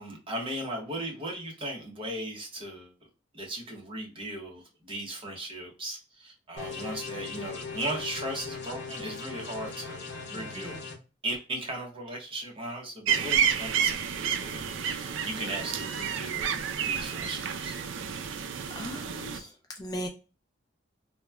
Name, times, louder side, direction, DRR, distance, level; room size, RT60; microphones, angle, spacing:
voice 1, 0.0-2.9 3.3-10.9 11.2-17.8, right 1 dB, 30° right, 0 dB, 0.9 m, -37 dB
sound 1, 6.6-10.9, left 4 dB, 60° left, 0.8 m, -39 dB
voice 2, 10.3-10.8 18.7-19.5 19.8-20.1, equal, 20° left, 2 dB, 0.3 m, -38 dB
sound 2, 13.1-19.4, right 7 dB, 80° right, 0.4 m, -30 dB
3.0 x 2.1 x 2.2 m, 0.32 s
head